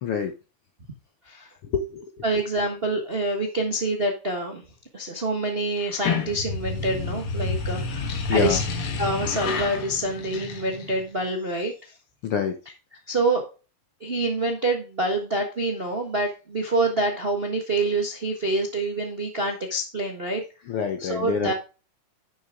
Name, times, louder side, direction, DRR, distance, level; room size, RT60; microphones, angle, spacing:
voice 1, 0.0-0.3 1.6-2.1 8.3-8.6 12.2-12.6 20.7-21.5, left 6 dB, 65° left, 6 dB, 1.4 m, -26 dB
voice 2, 2.2-4.6 4.9-8.6 9.0-11.9 13.1-13.4 14.0-20.4 21.0-21.5, right 2 dB, 40° right, 2 dB, 0.8 m, -26 dB
sound 1, 5.8-11.1, left 4 dB, 50° left, 1.8 m, -29 dB
11.0 x 6.4 x 3.7 m, 0.32 s
omnidirectional pair, 3.7 m